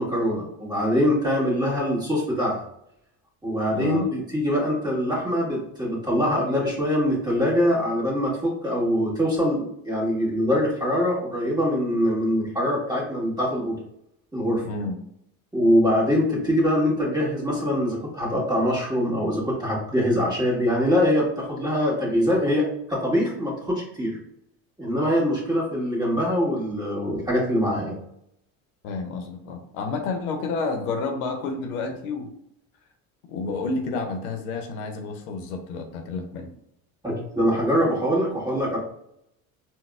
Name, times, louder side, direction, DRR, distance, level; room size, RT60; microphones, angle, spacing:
voice 1, 0.0-2.6 3.4-13.8 14.3-14.6 15.5-24.2 24.8-28.0 37.0-38.8, equal, 10° right, -5 dB, 1.4 m, -23 dB
voice 2, 3.7-4.1 14.6-15.0 28.8-32.3 33.3-36.5, left 3 dB, 90° left, 5 dB, 0.6 m, -30 dB
3.9 x 2.1 x 2.3 m, 0.76 s
supercardioid pair, 80°, 42 cm